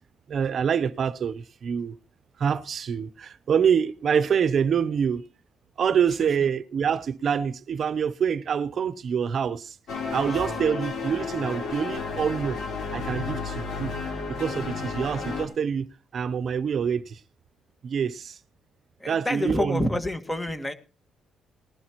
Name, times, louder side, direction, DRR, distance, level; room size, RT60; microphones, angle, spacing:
voice 1, 0.3-2.0 2.4-5.2 5.8-9.8 10.1-12.6 12.9-13.9 14.4-17.2 17.8-18.4 19.1-19.9, right 7 dB, 55° right, 0.7 m, -26 dB
sound 1, 9.9-15.5, left 4 dB, 70° left, 3.8 m, -32 dB
voice 2, 19.0-20.7, left 1 dB, 15° left, 1.8 m, -28 dB
19.5 x 11.5 x 3.0 m
cardioid pair, 90°, 0 cm